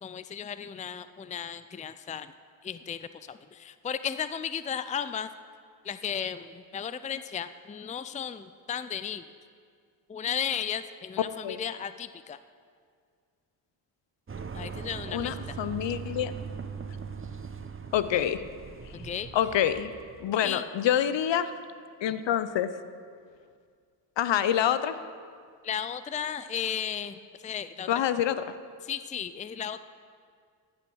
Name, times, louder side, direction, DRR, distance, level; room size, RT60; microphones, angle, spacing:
voice 1, 0.0-2.3 2.6-5.3 5.8-9.2 10.1-12.4 14.5-15.4 18.9-19.3 20.4-20.7 25.6-27.9 28.8-29.8, left 8 dB, 15° left, 13 dB, 0.5 m, -35 dB
sound 1, 14.3-20.3, right 5 dB, 25° right, 1.0 m, -40 dB
voice 2, 15.1-16.3 17.9-18.4 19.3-19.9 20.2-21.5 22.0-22.7 24.2-25.0 27.9-28.5, left 10 dB, 60° left, 13 dB, 0.8 m, -26 dB
14.5 x 8.7 x 6.3 m, 2.1 s
hypercardioid pair, 45°, 50 cm